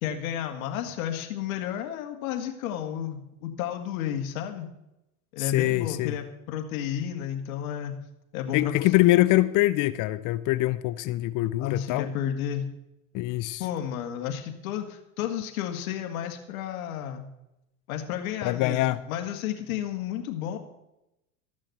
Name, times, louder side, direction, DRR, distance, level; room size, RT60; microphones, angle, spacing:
voice 1, 0.0-4.7 5.3-7.9 8.3-8.7 9.0-9.1 11.6-12.7 13.6-17.2 17.9-20.6, left 10 dB, 80° left, 2.0 m, -32 dB
voice 2, 5.4-6.1 8.5-12.1 13.1-13.6 18.4-19.0, left 17 dB, 50° left, 0.6 m, -24 dB
13.5 x 6.4 x 7.8 m
supercardioid pair, 110°, 41 cm